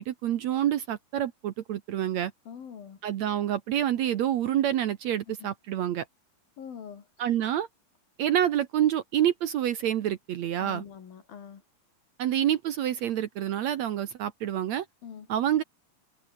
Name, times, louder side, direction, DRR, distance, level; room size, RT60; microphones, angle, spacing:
voice 1, 0.0-2.3 3.0-6.1 7.2-7.7 8.2-10.8 12.2-14.9 15.3-15.6, right 11 dB, 65° right, 1.9 m, -27 dB
voice 2, 2.5-3.0 5.3-5.5 6.6-7.3 10.6-11.6 15.0-15.3, left 7 dB, 85° left, 5.0 m, -44 dB
omnidirectional pair, 4.1 m